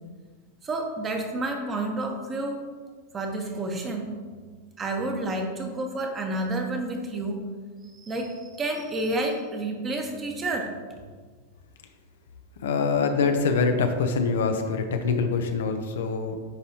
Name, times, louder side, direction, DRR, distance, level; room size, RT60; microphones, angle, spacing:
voice 1, 0.6-2.6 3.1-4.1 4.8-7.4 7.9-10.7, right 2 dB, 25° right, 3 dB, 1.1 m, -30 dB
voice 2, 12.6-16.4, left 4 dB, 70° left, 6 dB, 0.6 m, -24 dB
9.7 x 4.1 x 2.8 m, 1.5 s
figure-of-eight pair, 95°, 0 cm